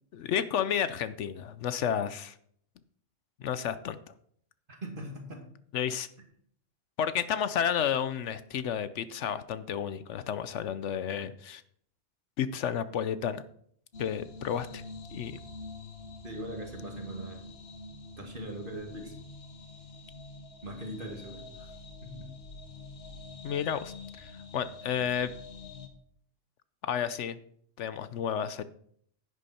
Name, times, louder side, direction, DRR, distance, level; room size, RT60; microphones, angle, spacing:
voice 1, 0.1-2.3 3.4-4.0 5.7-6.1 7.0-11.6 12.4-13.4 14.0-14.8 15.1-15.4 23.4-25.3 26.8-27.4 27.8-28.6, left 8 dB, 70° left, 14 dB, 0.9 m, -31 dB
voice 2, 4.7-5.5 16.2-17.5 18.2-19.1 20.6-21.7 22.0-22.3, right 1 dB, 45° right, 2 dB, 2.3 m, -41 dB
sound 1, 13.9-25.9, left 2 dB, 55° left, 1.4 m, -46 dB
10.5 x 9.9 x 4.3 m, 0.64 s
omnidirectional pair, 1.3 m